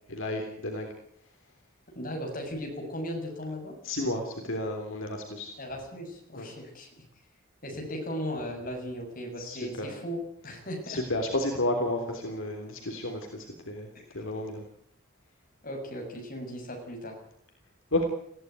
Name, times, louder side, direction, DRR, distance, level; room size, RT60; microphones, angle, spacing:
voice 1, 0.1-0.9 3.8-5.5 6.3-6.5 9.4-9.9 10.9-14.6 17.9-18.0, left 1 dB, 75° left, 2 dB, 3.4 m, -32 dB
voice 2, 2.0-3.8 5.6-6.9 7.6-11.0 13.9-14.0 15.6-17.2, equal, 45° left, 1 dB, 7.0 m, -37 dB
21.0 x 15.5 x 9.5 m, 0.74 s
head